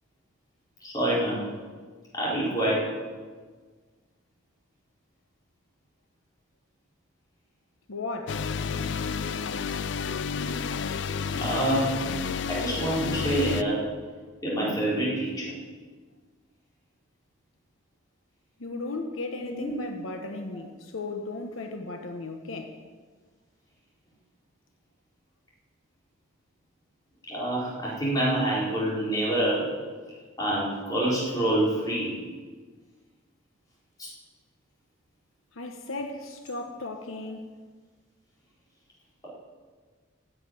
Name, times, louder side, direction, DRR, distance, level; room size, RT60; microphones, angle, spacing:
voice 1, 0.8-1.4 2.1-2.8 11.4-12.0 12.5-13.8 14.4-15.5 19.4-19.7 27.3-29.6 30.4-32.1 34.0-34.1 39.2-39.3, right 1 dB, 20° left, -6 dB, 4.2 m, -26 dB
voice 2, 7.9-8.4 18.6-22.8 35.5-37.5, left 2 dB, 85° left, 5 dB, 1.1 m, -36 dB
sound 1, 8.3-13.6, left 6 dB, 60° left, 0.4 m, -30 dB
10.5 x 8.0 x 9.1 m, 1.5 s
head